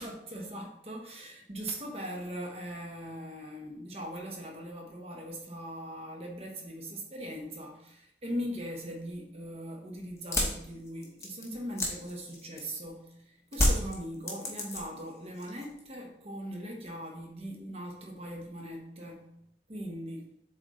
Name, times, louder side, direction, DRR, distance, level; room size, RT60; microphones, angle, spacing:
voice 1, 0.0-19.3 19.7-20.3, equal, 35° right, 0 dB, 1.2 m, -40 dB
sound 1, 10.2-12.9 13.5-15.1 15.4-15.9, left 1 dB, 15° left, 1.0 m, -30 dB
7.3 x 4.0 x 3.2 m, 0.75 s
head